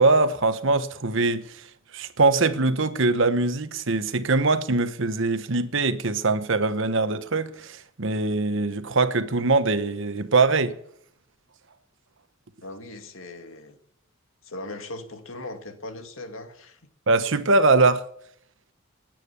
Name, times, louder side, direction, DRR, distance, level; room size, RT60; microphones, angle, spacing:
voice 1, 0.0-1.6 1.9-10.8 17.1-18.0, right 3 dB, 65° right, 1.2 m, -22 dB
voice 2, 12.6-13.8 14.4-16.8, left 2 dB, 70° left, 2.1 m, -39 dB
19.5 x 9.1 x 6.9 m
head